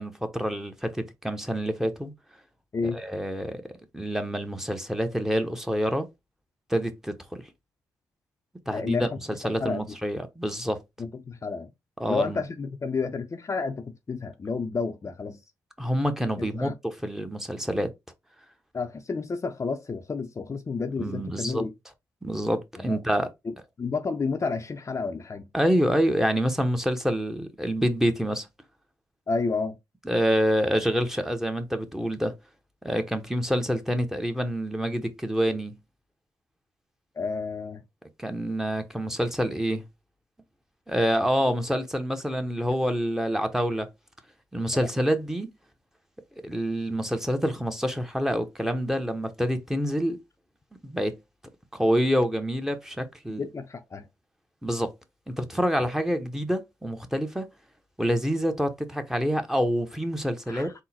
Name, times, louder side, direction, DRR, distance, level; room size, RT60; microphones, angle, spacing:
voice 1, 0.0-2.1 2.9-3.6 3.9-6.1 6.7-7.4 8.7-9.0 9.3-10.8 12.0-12.4 15.8-17.9 21.0-21.7 22.2-23.3 25.5-28.5 30.1-32.3 32.8-35.8 38.2-39.8 40.9-43.9 44.5-45.5 46.4-50.2 50.8-51.2 51.7-53.5 54.6-54.9 55.3-57.5 58.0-60.7, equal, 5° right, 0.9 m, -27 dB
voice 2, 8.7-9.1 9.6-9.8 11.0-11.7 12.1-15.4 16.4-16.8 18.7-21.7 22.8-23.0 23.5-25.5 29.3-29.8 37.2-37.8 41.4-41.5 44.7-44.9 53.3-54.1 55.8-55.9 60.5-60.7, left 4 dB, 35° left, 0.6 m, -31 dB
3.8 x 2.1 x 4.2 m
hypercardioid pair, 45°, 8 cm